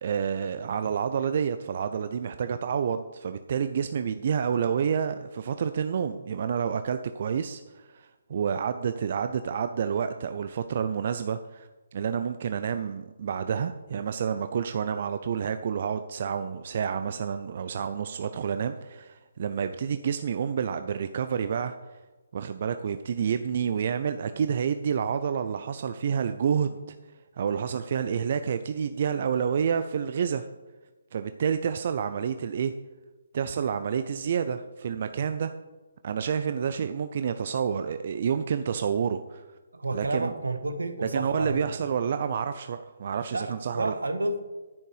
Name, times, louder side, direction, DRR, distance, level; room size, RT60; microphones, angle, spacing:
voice 1, 0.0-21.7 22.3-27.0 27.4-30.5 31.1-32.7 33.3-35.5 36.0-39.6 39.9-40.3 41.0-43.9, right 7 dB, 50° right, 9 dB, 0.5 m, -29 dB
voice 2, 39.7-41.6 43.3-44.4, right 2 dB, 80° right, 9 dB, 1.3 m, -30 dB
10.5 x 9.2 x 4.9 m, 1.2 s
figure-of-eight pair, 145°, 0 cm